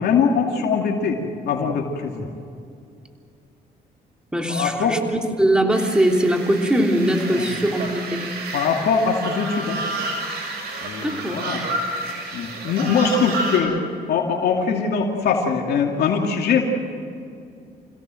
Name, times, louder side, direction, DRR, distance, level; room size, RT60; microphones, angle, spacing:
voice 1, 0.0-2.3 4.5-5.0 7.3-7.5 8.5-9.8 10.8-11.6 12.3-13.8 14.1-16.6, left 5 dB, 75° left, 1 dB, 2.6 m, -22 dB
voice 2, 4.3-5.0 5.4-8.2 11.0-11.4, right 1 dB, 5° right, 2 dB, 3.3 m, -21 dB
sound 1, 5.7-13.6, right 2 dB, 75° right, 7.4 m, -30 dB
28.0 x 16.5 x 7.7 m, 2.5 s
cardioid pair, 85°, 17 cm